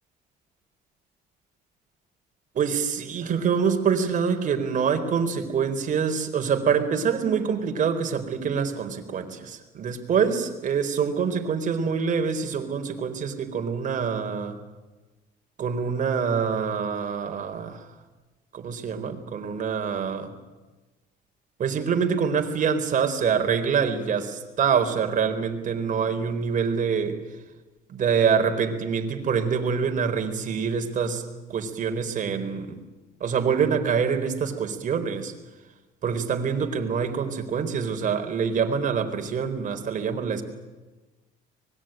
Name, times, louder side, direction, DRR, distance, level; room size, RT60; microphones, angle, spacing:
voice 1, 2.5-14.6 15.6-17.9 18.5-20.3 21.6-27.2 27.9-31.2 31.5-32.8 33.2-35.3 36.0-40.4, right 6 dB, 50° right, 6 dB, 4.3 m, -25 dB
25.0 x 21.5 x 9.1 m, 1.2 s
cardioid pair, 110°, 17 cm